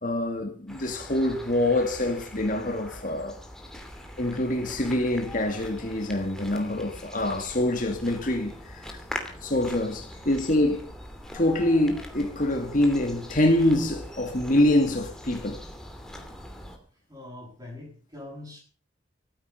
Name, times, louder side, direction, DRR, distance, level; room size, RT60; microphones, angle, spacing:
voice 1, 0.0-3.4 4.2-9.0 9.4-10.9 11.3-15.6, left 1 dB, 40° left, 2.3 m, -25 dB
sound 1, 0.7-16.8, left 1 dB, 5° left, 2.7 m, -42 dB
voice 2, 10.1-10.5 12.9-13.0 17.1-18.6, left 2 dB, 20° right, 7.9 m, -44 dB
14.5 x 14.0 x 5.8 m
head